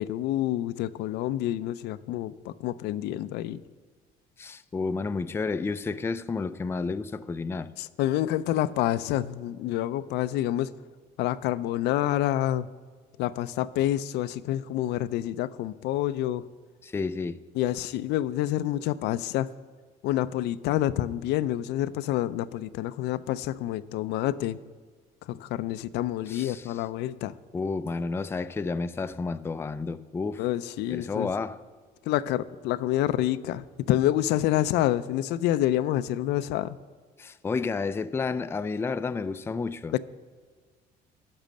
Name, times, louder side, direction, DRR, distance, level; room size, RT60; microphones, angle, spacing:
voice 1, 0.0-3.6 7.8-10.7 11.2-12.7 13.2-16.4 17.6-19.5 20.0-24.6 25.3-27.4 30.4-31.3 32.1-36.8, left 13 dB, 85° left, 0.4 m, -28 dB
voice 2, 4.4-7.7 16.8-17.4 26.3-26.8 27.5-30.4 30.9-31.6 37.2-40.0, left 4 dB, 15° left, 0.3 m, -31 dB
10.5 x 6.2 x 6.6 m
cardioid pair, 110°, 17 cm